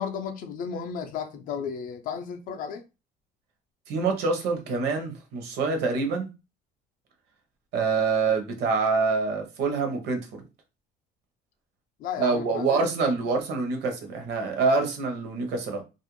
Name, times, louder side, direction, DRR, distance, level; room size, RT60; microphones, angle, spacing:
voice 1, 0.0-2.9 12.0-12.8, left 7 dB, 50° left, 0.4 m, -34 dB
voice 2, 3.9-6.3 7.7-10.4 12.2-15.8, right 4 dB, 70° right, 0.7 m, -26 dB
2.4 x 2.0 x 3.0 m
cardioid pair, 155°, 18 cm